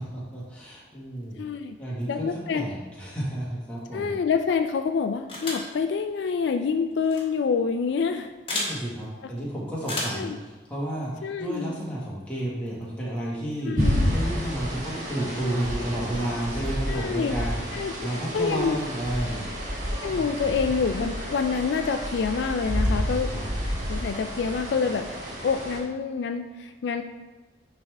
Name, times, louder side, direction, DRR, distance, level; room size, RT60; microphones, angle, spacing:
voice 1, 0.0-1.4 1.8-4.1 8.5-19.5 20.1-20.4 22.7-23.5, right 1 dB, 5° left, -7 dB, 1.5 m, -32 dB
voice 2, 1.4-1.8 2.1-2.6 3.9-8.3 10.1-10.4 11.2-11.7 13.7-14.2 16.9-17.4 17.7-17.9 18.3-18.8 20.0-23.5 23.9-25.1 25.4-27.0, left 5 dB, 65° left, 7 dB, 0.3 m, -27 dB
sound 1, 5.3-5.7 7.0-7.2 8.5-8.7 9.8-10.3, left 2 dB, 30° left, 1.4 m, -31 dB
sound 2, 13.8-25.8, equal, 40° right, 1.2 m, -30 dB
9.6 x 3.5 x 3.4 m, 1.2 s
head